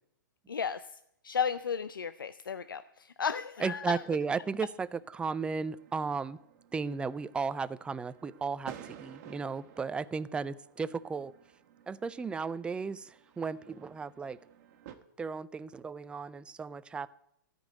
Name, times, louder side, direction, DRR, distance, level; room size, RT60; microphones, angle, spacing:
voice 1, 0.5-0.8 1.2-4.0, left 6 dB, 90° left, 12 dB, 0.5 m, -34 dB
voice 2, 3.6-6.4 6.7-11.3 11.9-14.4 15.2-17.1, right 5 dB, 10° right, 16 dB, 0.4 m, -35 dB
sound 1, 3.8-15.0, right 10 dB, 45° right, 1.4 m, -54 dB
14.0 x 5.4 x 9.4 m, 0.76 s
hypercardioid pair, 125°, 11 cm